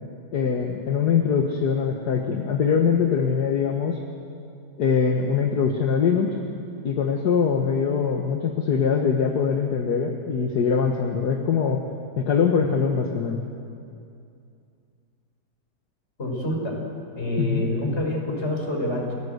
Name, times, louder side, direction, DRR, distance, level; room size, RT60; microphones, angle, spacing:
voice 1, 0.3-4.0 4.8-6.4 6.8-11.8 12.2-13.4 17.4-17.6, left 6 dB, 65° left, 3 dB, 1.9 m, -22 dB
voice 2, 16.2-16.8 17.2-19.1, left 1 dB, 35° left, 0 dB, 5.4 m, -26 dB
29.5 x 17.0 x 8.1 m, 2.5 s
omnidirectional pair, 1.9 m